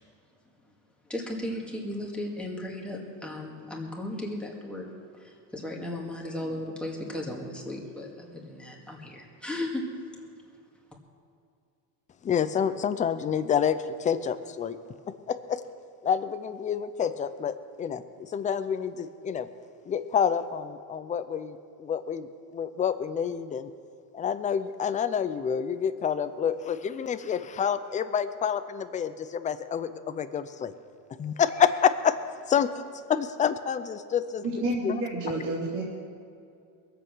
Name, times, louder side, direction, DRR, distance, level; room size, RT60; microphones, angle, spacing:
voice 1, 1.1-4.9 5.1-9.8, left 1 dB, ahead, -2 dB, 2.1 m, -36 dB
voice 2, 12.2-14.8 15.3-15.6 16.0-19.5 19.8-23.7 24.1-30.7 31.2-32.2 32.5-32.8 33.1-34.4 34.8-35.0, left 8 dB, 15° left, 11 dB, 0.4 m, -28 dB
voice 3, 34.4-35.8, right 2 dB, 40° right, -6 dB, 3.1 m, -29 dB
21.5 x 8.0 x 6.2 m, 2.5 s
supercardioid pair, 135°, 46 cm